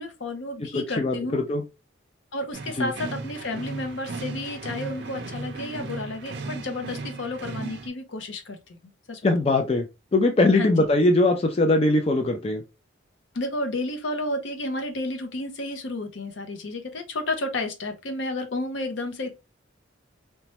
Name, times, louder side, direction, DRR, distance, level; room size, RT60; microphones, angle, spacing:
voice 1, 0.0-1.4 2.3-8.8 9.1-9.5 10.5-10.7 13.3-19.3, left 2 dB, 70° left, 0.6 m, -31 dB
voice 2, 0.6-1.6 2.8-2.9 9.2-9.9 10.1-12.6, left 2 dB, 30° left, 0.4 m, -21 dB
sound 1, 2.5-7.9, right 3 dB, 55° right, 0.4 m, -36 dB
3.0 x 2.2 x 2.8 m
head